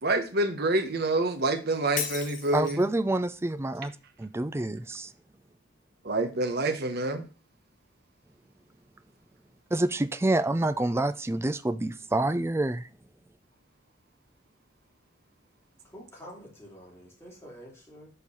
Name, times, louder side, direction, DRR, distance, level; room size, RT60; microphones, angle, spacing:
voice 1, 0.0-2.8 6.0-7.3, right 2 dB, 55° right, 1.1 m, -27 dB
Shatter, 2.0-3.0, left 7 dB, 45° left, 1.1 m, -35 dB
voice 2, 2.5-3.9 4.2-5.1 9.7-12.9, right 2 dB, 15° right, 0.4 m, -27 dB
voice 3, 15.8-18.1, equal, 15° left, 3.2 m, -48 dB
6.8 x 4.6 x 5.5 m
head